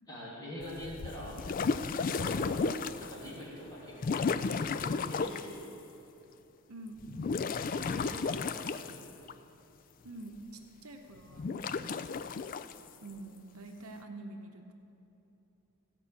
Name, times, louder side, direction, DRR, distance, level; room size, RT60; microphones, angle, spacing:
voice 1, 0.1-1.4 2.2-2.7 3.0-4.3 4.8-5.6 7.7-9.0, left 1 dB, 15° left, -7 dB, 3.0 m, -44 dB
sound 1, 0.6-3.2 4.0-5.5 7.0-9.3 11.3-12.7, left 4 dB, 40° left, 0.3 m, -33 dB
voice 2, 6.7-7.1 10.0-10.4 10.8-11.8 13.0-14.7, right 2 dB, 80° right, 4 dB, 0.9 m, -46 dB
16.0 x 5.5 x 8.2 m, 2.9 s
head